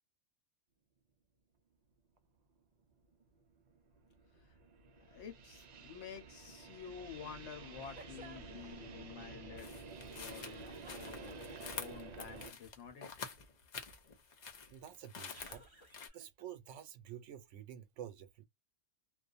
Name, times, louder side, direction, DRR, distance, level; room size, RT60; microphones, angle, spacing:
sound 1, 2.2-2.3 2.8-12.5, right 3 dB, 55° right, 0.4 m, -51 dB
voice 1, 5.0-9.7 10.2-11.4 11.7-13.0, left 7 dB, 65° left, 1.1 m, -50 dB
sound 2, 7.8-8.6 10.3-11.7 15.3-16.4, right 2 dB, 30° right, 1.0 m, -57 dB
sound 3, 9.6-16.1, left 5 dB, 50° left, 0.6 m, -48 dB
voice 2, 14.7-15.6 16.1-18.5, right 10 dB, 80° right, 0.9 m, -49 dB
2.5 x 2.1 x 2.4 m
omnidirectional pair, 1.3 m